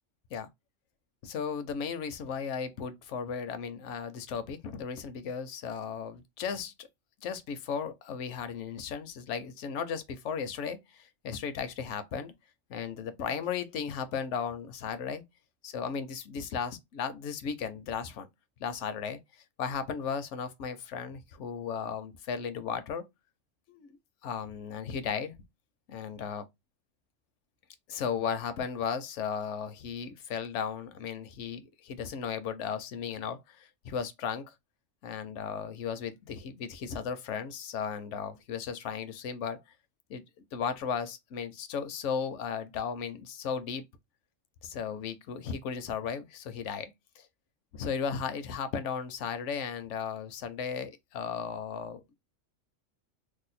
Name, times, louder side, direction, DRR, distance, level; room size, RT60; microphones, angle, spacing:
voice 1, 1.2-6.9 7.2-12.3 12.7-15.2 15.6-18.3 18.6-19.2 19.6-23.1 23.7-24.0 24.2-25.3 25.9-26.4 27.9-34.5 35.0-39.6 40.1-40.2 40.5-43.8 44.6-46.9 47.2-47.3 47.7-52.1, left 6 dB, 75° left, 0.9 m, -35 dB
2.7 x 2.2 x 4.0 m
omnidirectional pair, 1.3 m